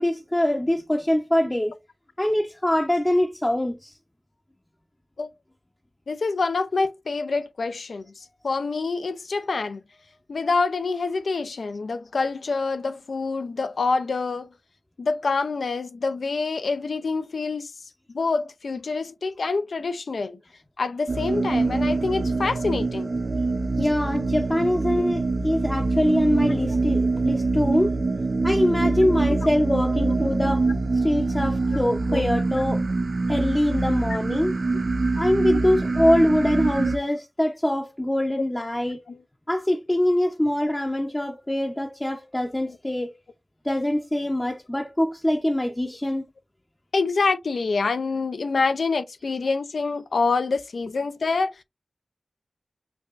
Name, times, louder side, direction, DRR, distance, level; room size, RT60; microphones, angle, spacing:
voice 1, 0.0-1.7 2.2-3.9 23.8-28.0 28.4-30.7 30.9-32.8 33.3-34.6 35.1-39.0 39.5-43.1 43.6-46.2, left 1 dB, 20° left, 0.5 m, -23 dB
voice 2, 6.1-9.8 10.3-14.5 15.0-17.7 18.1-20.4 20.8-23.1 25.0-25.1 29.3-29.4 30.0-30.2 32.1-32.2 35.5-35.7 39.1-39.2 46.9-51.6, left 4 dB, 85° left, 0.4 m, -26 dB
sound 1, 21.1-37.0, right 3 dB, 65° right, 0.4 m, -24 dB
4.6 x 2.3 x 2.4 m
cardioid pair, 50°, 0 cm